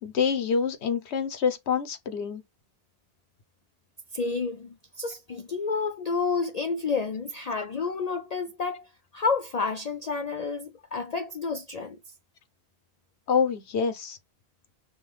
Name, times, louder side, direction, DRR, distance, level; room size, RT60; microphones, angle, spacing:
voice 1, 0.0-2.4 13.3-14.2, left 6 dB, 80° left, 1.1 m, -26 dB
voice 2, 4.1-12.0, left 4 dB, 55° left, 0.4 m, -30 dB
5.6 x 2.3 x 3.2 m
omnidirectional pair, 1.1 m